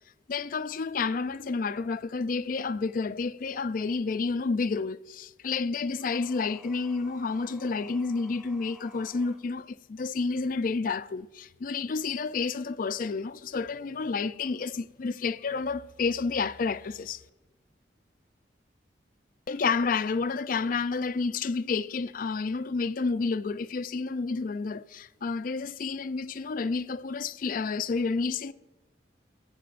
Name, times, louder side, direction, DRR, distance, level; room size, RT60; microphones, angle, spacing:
voice 1, 0.3-17.2 19.5-28.5, left 4 dB, 50° left, 0.4 m, -30 dB
sound 1, 5.9-9.4, equal, 5° right, 1.3 m, -54 dB
25.0 x 14.5 x 2.5 m
head